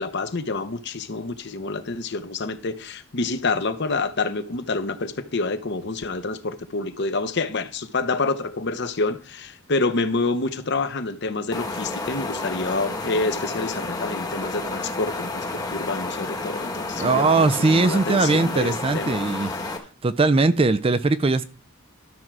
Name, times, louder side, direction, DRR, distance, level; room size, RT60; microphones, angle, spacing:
voice 1, 0.0-19.7, left 3 dB, 50° left, 0.8 m, -28 dB
sound 1, 11.5-19.8, left 2 dB, 15° left, 1.1 m, -30 dB
voice 2, 17.0-19.5 20.0-21.4, right 3 dB, 25° right, 0.4 m, -20 dB
12.0 x 4.5 x 6.1 m
head